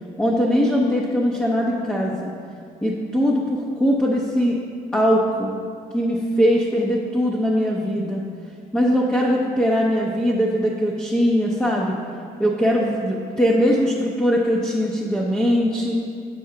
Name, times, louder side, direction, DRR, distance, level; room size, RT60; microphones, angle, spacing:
voice 1, 0.2-2.3 2.8-4.6 4.9-5.5 5.9-8.2 8.7-11.9 12.4-15.9, equal, 5° left, -3 dB, 0.6 m, -21 dB
6.8 x 5.5 x 3.8 m, 2.3 s
cardioid pair, 110°, 17 cm